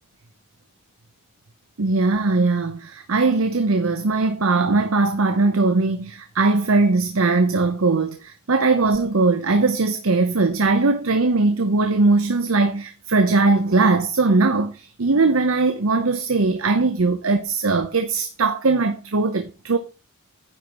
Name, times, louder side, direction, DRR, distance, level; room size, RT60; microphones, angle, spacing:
voice 1, 1.8-19.8, right 3 dB, 70° right, 0.8 m, -20 dB
9.9 x 4.8 x 5.5 m
head